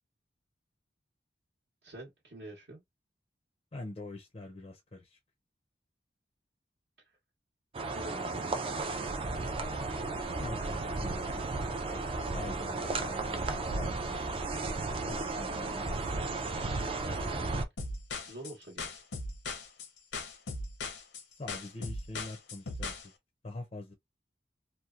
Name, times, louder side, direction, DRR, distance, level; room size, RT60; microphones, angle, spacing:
voice 1, 1.8-2.8 7.9-8.6 18.3-19.0, right 1 dB, 65° right, 0.9 m, -46 dB
voice 2, 3.7-5.2 10.4-11.7 12.3-14.6 15.1-16.3 21.4-23.1 23.4-23.9, left 2 dB, 35° left, 0.4 m, -45 dB
sound 1, 7.7-17.7, right 3 dB, 30° right, 0.3 m, -34 dB
sound 2, 17.8-23.1, left 3 dB, 80° left, 0.6 m, -39 dB
2.8 x 2.1 x 2.3 m
head